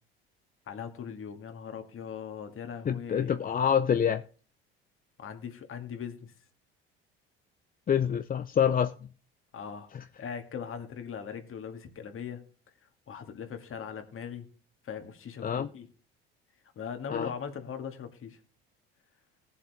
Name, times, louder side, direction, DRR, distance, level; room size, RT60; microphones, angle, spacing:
voice 1, 0.7-3.4 5.2-6.3 9.5-9.9 10.2-12.4 13.1-14.5 14.8-15.9 16.8-18.4, left 7 dB, 45° left, 2.3 m, -40 dB
voice 2, 2.8-4.2 7.9-8.9 9.9-10.0 15.4-15.7 17.1-17.3, left 8 dB, 30° left, 0.6 m, -26 dB
18.5 x 7.4 x 3.6 m
hypercardioid pair, 65°, 30 cm